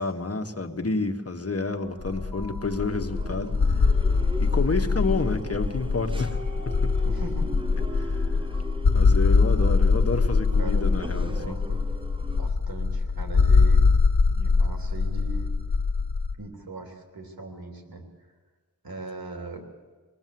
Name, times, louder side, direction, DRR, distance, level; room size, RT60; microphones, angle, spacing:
voice 1, 0.0-3.5 4.4-6.4 6.6-6.9 7.9-8.3 8.9-11.5, left 3 dB, 45° left, 5 dB, 1.5 m, -29 dB
sound 1, 1.6-8.8, right 1 dB, 55° right, 2.1 m, -47 dB
sound 2, 2.0-16.3, left 4 dB, 85° left, 1.3 m, -23 dB
sound 3, 2.9-12.5, right 1 dB, 15° right, 0.8 m, -40 dB
voice 2, 7.0-7.5 8.4-8.5 10.6-11.9 12.3-13.9 14.3-15.5 16.4-18.0 18.8-19.7, right 2 dB, 85° right, 3 dB, 3.3 m, -39 dB
26.5 x 19.5 x 7.8 m, 1.4 s
wide cardioid pair, 80°, 35 cm